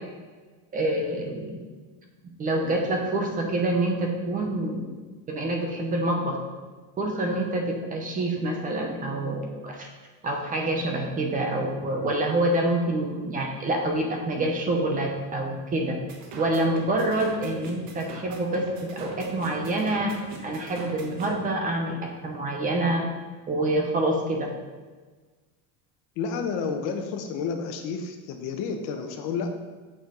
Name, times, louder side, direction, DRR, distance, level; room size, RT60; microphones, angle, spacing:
voice 1, 0.7-1.6 2.4-4.8 5.3-6.4 7.0-9.9 10.2-15.9 16.4-20.2 20.4-23.0 23.5-24.5, right 1 dB, 20° right, 2 dB, 0.9 m, -26 dB
sound 1, 16.1-21.3, right 4 dB, 50° right, 1.3 m, -41 dB
voice 2, 26.2-29.5, left 5 dB, 55° left, 5 dB, 1.0 m, -30 dB
8.0 x 6.6 x 3.9 m, 1.4 s
cardioid pair, 180°, 41 cm